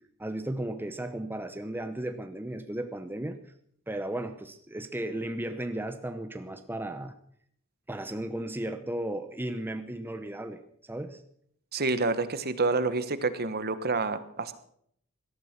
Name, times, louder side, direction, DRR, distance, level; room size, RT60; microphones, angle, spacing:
voice 1, 0.2-3.4 3.9-7.1 7.9-11.2, right 1 dB, 10° right, 8 dB, 0.8 m, -35 dB
voice 2, 11.7-14.5, right 3 dB, 45° right, 12 dB, 1.2 m, -28 dB
18.0 x 12.5 x 6.0 m, 0.67 s
head